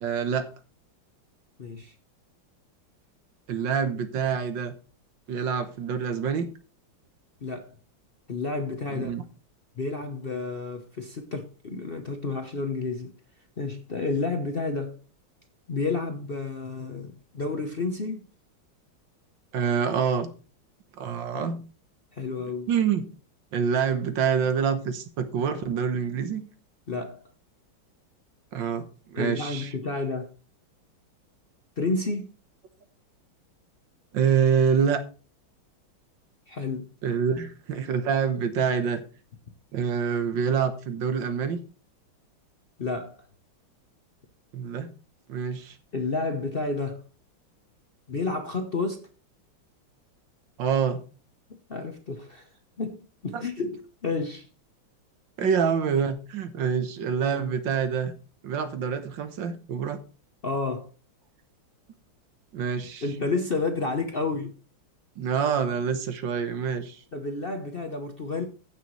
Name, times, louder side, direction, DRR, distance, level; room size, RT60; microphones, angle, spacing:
voice 1, 0.0-0.5 3.5-4.7 5.3-6.5 8.9-9.2 19.5-20.3 20.9-21.6 22.7-23.0 23.5-26.4 28.5-29.7 34.1-35.0 37.0-39.0 39.7-41.6 44.5-44.9 45.3-45.8 50.6-51.0 53.3-53.4 55.4-58.1 58.4-60.0 62.5-63.0 65.2-67.0, right 7 dB, 70° right, 1.7 m, -26 dB
voice 2, 1.6-1.9 7.4-7.8 8.3-9.1 9.8-13.1 13.6-15.0 15.7-18.3 21.3-21.5 22.1-22.7 26.9-27.2 29.2-30.3 31.8-32.3 36.5-36.9 42.8-43.3 45.9-47.0 48.1-49.1 51.5-52.5 52.8-54.5 55.4-55.5 60.4-60.9 63.0-64.5 67.1-68.4, left 3 dB, 55° left, 0.6 m, -30 dB
15.5 x 6.8 x 3.1 m
omnidirectional pair, 2.2 m